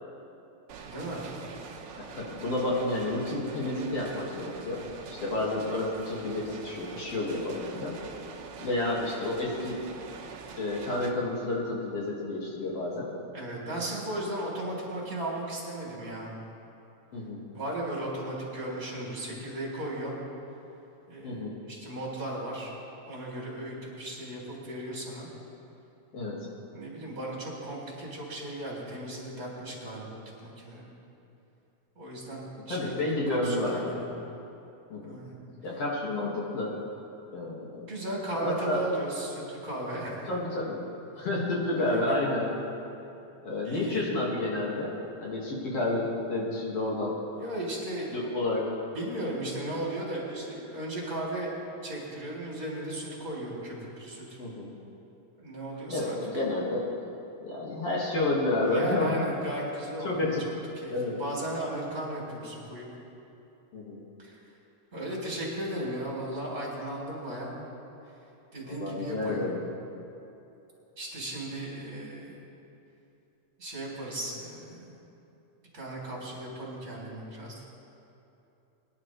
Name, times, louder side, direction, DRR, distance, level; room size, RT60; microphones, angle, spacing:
sound 1, 0.7-11.1, right 5 dB, 65° right, 1.5 m, -44 dB
voice 1, 0.8-1.3 13.3-16.3 17.5-20.2 21.1-22.7 23.1-25.3 26.7-30.9 32.0-34.1 35.0-35.4 37.9-40.3 41.8-42.2 43.6-44.0 47.3-48.2 48.9-51.5 51.8-54.4 55.4-56.2 58.6-60.3 60.8-62.9 64.2-64.4 64.9-67.5 68.5-69.5 71.0-72.4 73.6-74.9 75.7-77.6, right 1 dB, 25° right, -4 dB, 3.6 m, -36 dB
voice 2, 2.0-4.8 5.1-8.0 8.6-9.8 10.6-13.1 17.1-17.4 21.2-21.5 26.1-26.5 32.7-34.2 34.9-35.2 35.6-36.7 37.3-37.9 38.4-38.8 40.3-40.8 41.1-42.5 43.4-47.1 48.1-48.6 54.4-54.7 55.9-56.8 57.4-59.2 60.0-60.4 60.9-61.2 63.7-64.0 68.7-69.6, left 2 dB, 50° left, -4 dB, 2.7 m, -30 dB
23.5 x 11.0 x 3.2 m, 2.9 s
omnidirectional pair, 3.7 m